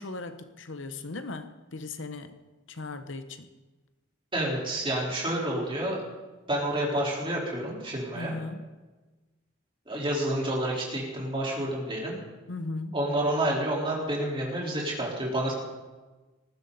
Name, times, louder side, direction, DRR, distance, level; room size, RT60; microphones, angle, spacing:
voice 1, 0.0-2.4 2.7-3.5 8.1-8.8 12.5-13.0, left 3 dB, 65° left, 10 dB, 0.9 m, -37 dB
voice 2, 4.3-6.0 6.5-8.3 9.9-12.2 12.9-15.5, right 1 dB, 25° right, -3 dB, 4.1 m, -29 dB
19.5 x 14.5 x 4.1 m, 1.2 s
head